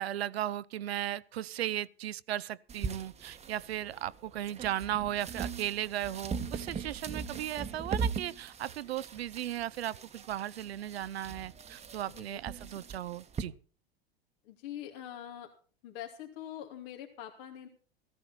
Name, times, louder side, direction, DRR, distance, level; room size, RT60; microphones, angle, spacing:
voice 1, 0.0-13.5, right 12 dB, 85° right, 0.7 m, -36 dB
sound 1, 2.7-13.4, right 5 dB, 20° right, 1.1 m, -40 dB
voice 2, 12.1-12.4 14.4-15.5 15.8-17.7, left 11 dB, 60° left, 2.7 m, -44 dB
15.0 x 14.5 x 4.4 m
hypercardioid pair, 105°, 31 cm